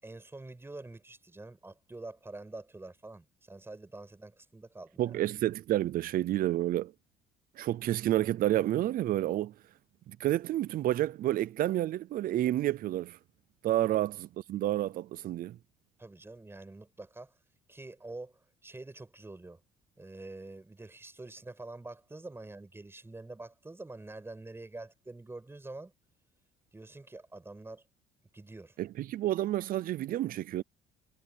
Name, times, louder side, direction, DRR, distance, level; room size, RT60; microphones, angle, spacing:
voice 1, 0.0-5.2 16.0-17.3 17.7-19.6 20.0-25.9 26.7-27.8 28.3-28.8, right 2 dB, 15° right, 6.0 m, -46 dB
voice 2, 5.0-6.9 7.6-9.5 10.1-13.2 13.6-15.6 28.8-30.6, right 13 dB, 60° right, 0.6 m, -30 dB
cardioid pair, 110°, 17 cm